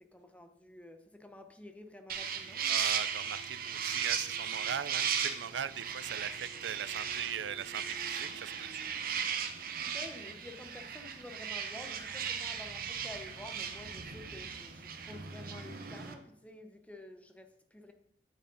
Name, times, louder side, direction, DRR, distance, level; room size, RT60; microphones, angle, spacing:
voice 1, 0.1-2.8 9.8-17.9, left 1 dB, 10° left, 0.8 m, -50 dB
sound 1, 2.1-16.1, right 7 dB, 55° right, 0.9 m, -37 dB
voice 2, 2.7-8.9, right 9 dB, 90° right, 0.4 m, -39 dB
9.1 x 7.9 x 4.0 m
head